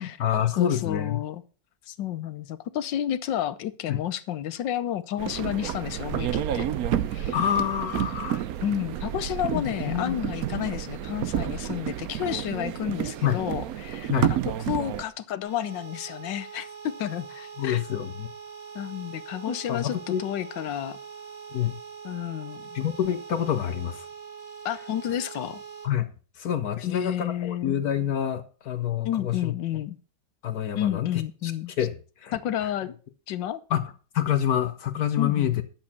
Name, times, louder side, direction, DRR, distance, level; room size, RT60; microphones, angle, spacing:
voice 1, 0.0-1.2 3.9-4.0 7.3-8.4 9.5-10.2 13.2-13.4 14.1-14.3 17.6-18.3 19.5-20.2 21.5-21.8 22.7-24.1 25.8-29.5 30.4-31.5 31.8-32.7 33.7-35.6, left 10 dB, 60° left, 1.2 m, -27 dB
voice 2, 0.6-1.4 1.9-6.7 7.1-7.3 8.6-14.1 14.7-16.7 17.0-17.8 18.7-21.0 22.0-22.7 24.6-25.6 26.8-27.7 29.0-30.0 30.7-31.7 32.3-32.9 33.3-33.6 35.2-35.6, left 11 dB, 75° left, 1.5 m, -31 dB
sound 1, 5.2-15.0, right 10 dB, 65° right, 1.0 m, -30 dB
sound 2, 15.5-25.8, right 6 dB, 50° right, 6.2 m, -43 dB
11.0 x 7.3 x 5.7 m
omnidirectional pair, 2.0 m